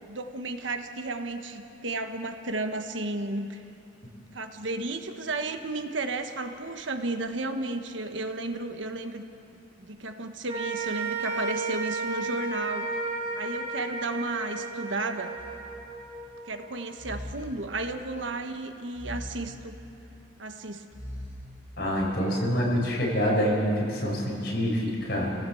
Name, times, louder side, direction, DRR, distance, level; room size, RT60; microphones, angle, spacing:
voice 1, 0.0-3.6 4.3-9.2 9.8-12.9 13.3-15.3 16.4-19.8 20.4-20.8 22.2-22.4 22.7-22.8, right 2 dB, 85° right, 6 dB, 1.4 m, -33 dB
sound 1, 10.5-16.9, right 3 dB, 25° right, 4.3 m, -33 dB
sound 2, 15.4-16.3 17.0-18.3 18.9-20.2 20.9-22.1, equal, 10° right, 7.4 m, -42 dB
voice 2, 21.8-25.3, equal, 55° left, -3 dB, 6.4 m, -26 dB
27.5 x 17.5 x 7.9 m, 2.7 s
head